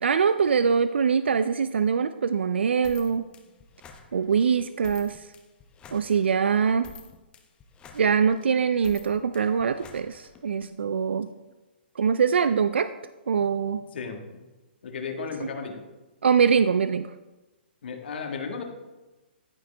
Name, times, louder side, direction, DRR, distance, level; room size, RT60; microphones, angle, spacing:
voice 1, 0.0-3.2 4.1-5.3 5.9-6.9 7.9-11.3 12.0-12.9 13.3-13.8 16.2-17.1, right 6 dB, 80° right, 12 dB, 0.3 m, -23 dB
sound 1, 2.8-10.7, left 5 dB, 15° left, 0.7 m, -50 dB
voice 2, 13.9-14.4 14.8-15.8 17.8-18.6, left 5 dB, 65° left, 4 dB, 1.6 m, -34 dB
14.0 x 4.9 x 3.3 m, 1.1 s
hypercardioid pair, 140°, 6 cm